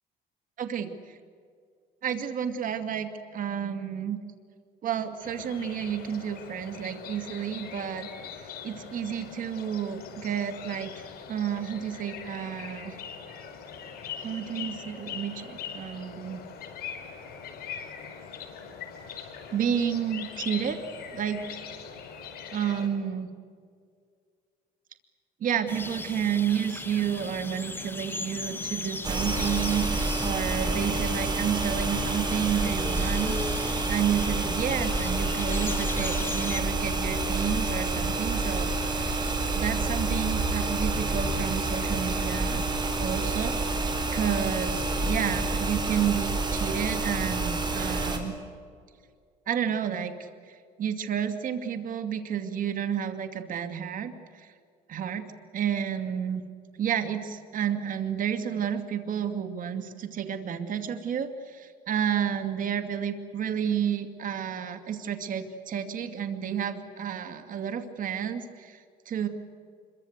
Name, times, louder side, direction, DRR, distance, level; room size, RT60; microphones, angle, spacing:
voice 1, 0.6-0.9 2.0-4.2 4.8-8.1 8.6-10.9 11.3-13.0 14.2-16.4 19.5-20.8 21.1-21.6 22.5-23.3 25.4-38.7 39.0-39.2 39.5-42.7 43.0-43.8 44.1-48.3 49.5-54.5 54.9-55.3 55.5-56.4 56.8-68.8 69.1-69.3, right 8 dB, 55° right, 7 dB, 2.4 m, -31 dB
sound 1, 5.2-22.9, left 7 dB, 65° left, 5.2 m, -42 dB
sound 2, 25.7-36.6, left 2 dB, 15° left, 1.8 m, -37 dB
sound 3, 29.0-48.2, right 2 dB, 25° right, 4.5 m, -28 dB
26.0 x 23.5 x 8.1 m, 2.2 s
cardioid pair, 110°, 17 cm